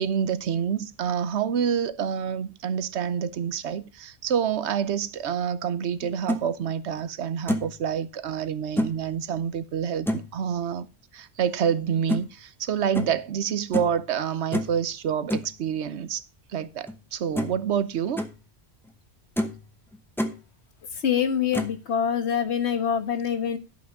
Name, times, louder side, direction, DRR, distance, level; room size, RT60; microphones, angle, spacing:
voice 1, 0.0-10.9 11.1-16.2 16.5-18.2, right 8 dB, 90° right, 1.1 m, -27 dB
sound 1, 6.0-6.4 7.0-7.1 7.5-7.8 8.8-9.0 10.1-10.3 12.1-12.2 12.9-13.2 13.7-14.0 14.5-14.8 15.3-15.5 16.9-17.0 17.3-17.6 18.0-18.3 18.9-19.0 19.4-19.6 19.9-20.4 21.5-21.8, equal, ahead, 0.9 m, -28 dB
voice 2, 21.0-23.6, left 8 dB, 80° left, 1.4 m, -25 dB
11.5 x 6.0 x 5.2 m
omnidirectional pair, 1.1 m